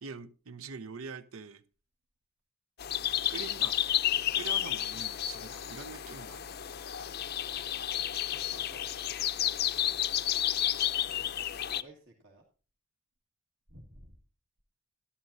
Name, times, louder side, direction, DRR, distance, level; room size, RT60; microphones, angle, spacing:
voice 1, 0.0-1.6 3.3-3.8 4.3-6.6, right 5 dB, 85° right, 0.7 m, -44 dB
sound 1, 2.8-11.8, left 11 dB, 50° left, 0.5 m, -31 dB
voice 2, 7.5-8.0 8.3-9.0 11.2-12.4 13.7-14.1, right 1 dB, 60° right, 1.8 m, -56 dB
12.5 x 11.0 x 2.6 m
head